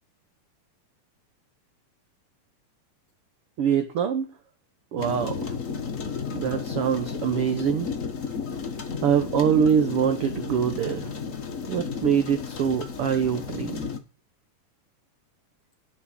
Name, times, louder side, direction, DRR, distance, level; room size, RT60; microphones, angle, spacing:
voice 1, 3.6-4.3 4.9-5.5 6.3-7.9 9.0-11.1 11.7-13.8, right 8 dB, 60° right, 7 dB, 1.6 m, -24 dB
sound 1, 5.0-14.0, left 5 dB, 60° left, 0.8 m, -33 dB
11.0 x 6.1 x 7.6 m, 0.29 s
omnidirectional pair, 3.7 m